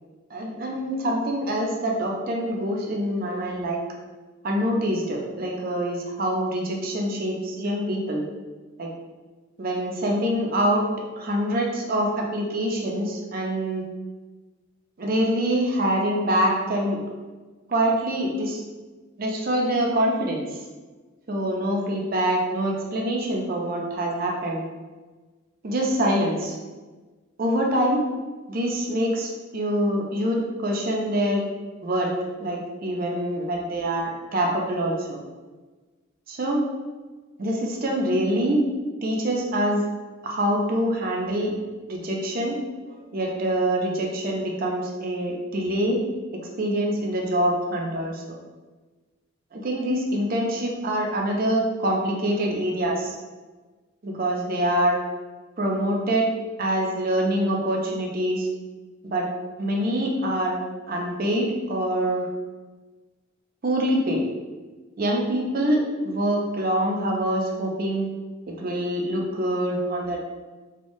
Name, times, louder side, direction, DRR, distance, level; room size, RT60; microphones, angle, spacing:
voice 1, 0.3-3.8 4.4-8.2 8.8-8.9 9.6-10.9 11.2-13.8 15.0-17.0 17.7-18.6 19.2-20.4 21.3-24.7 25.6-26.6 27.4-28.0 28.5-31.4 31.8-32.1 32.4-35.2 36.3-36.6 37.4-38.6 39.0-39.8 40.2-41.5 41.9-42.6 42.9-46.0 46.6-48.4 49.5-53.2 54.0-55.0 55.6-56.3 56.6-58.5 59.0-59.3 59.6-60.6 60.9-62.3 63.6-64.2 65.0-68.1 68.5-70.2, right 1 dB, 45° right, -1 dB, 0.5 m, -25 dB
3.5 x 2.2 x 2.6 m, 1.3 s
head